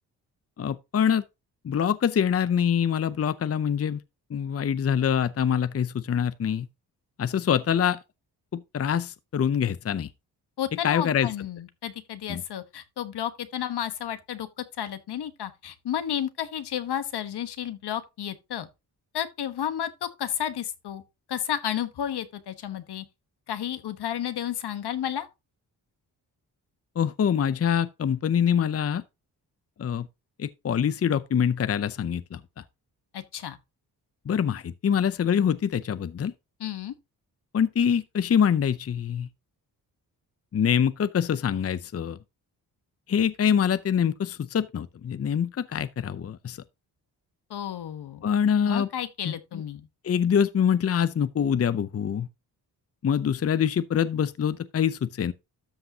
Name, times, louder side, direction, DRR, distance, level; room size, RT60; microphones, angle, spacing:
voice 1, 0.6-1.2 1.6-4.0 4.3-6.7 7.2-8.0 8.5-10.1 10.8-11.3 12.3-12.4 27.0-29.0 29.8-30.1 30.4-32.6 34.3-36.3 37.5-39.3 40.5-42.2 43.1-46.6 48.2-48.9 49.2-49.6 50.0-52.3 53.0-55.3, left 8 dB, 35° left, 0.6 m, -25 dB
voice 2, 10.6-18.7 19.1-21.0 21.3-23.0 23.5-25.3 33.1-33.6 36.6-36.9 47.5-48.2 48.6-49.9, left 10 dB, 75° left, 1.3 m, -32 dB
13.0 x 5.7 x 2.8 m
cardioid pair, 60°, 40 cm